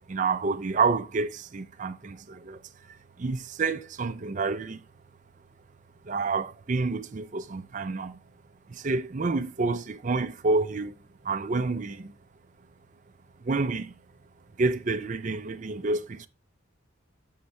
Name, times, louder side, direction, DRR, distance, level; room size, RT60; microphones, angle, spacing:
voice 1, 0.1-2.6 3.2-4.8 6.0-8.2 8.7-10.9 11.2-12.1 13.4-13.9 14.6-16.3, right 3 dB, 40° right, 0.5 m, -28 dB
8.2 x 6.5 x 3.2 m
head